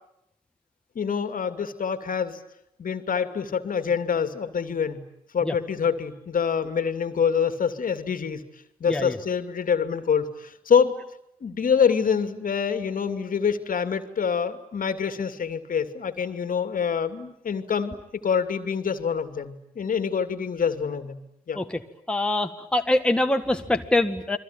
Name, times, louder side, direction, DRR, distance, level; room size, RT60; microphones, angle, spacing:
voice 1, 0.9-2.4 2.8-5.0 5.3-8.4 8.8-11.0 11.4-18.0 18.2-21.2 21.5-21.6, left 6 dB, 45° left, 9 dB, 2.5 m, -26 dB
voice 2, 22.1-24.4, left 1 dB, 5° left, 5 dB, 1.9 m, -24 dB
29.5 x 22.5 x 8.8 m, 0.81 s
hypercardioid pair, 45°, 19 cm